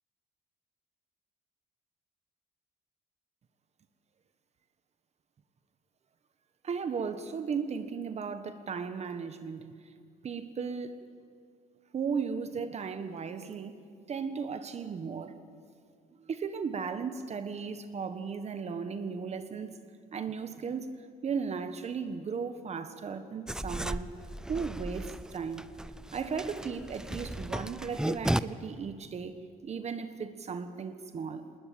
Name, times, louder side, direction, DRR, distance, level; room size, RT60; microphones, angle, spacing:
voice 1, 6.6-9.7 10.2-11.0 11.9-15.4 16.2-19.8 20.1-24.1 24.5-25.6 26.1-29.4 29.6-31.5, right 6 dB, 40° right, 10 dB, 1.4 m, -36 dB
Writing, 23.5-28.4, right 1 dB, 5° right, 0.5 m, -35 dB
20.0 x 19.5 x 8.9 m, 2.1 s
cardioid pair, 110°, 17 cm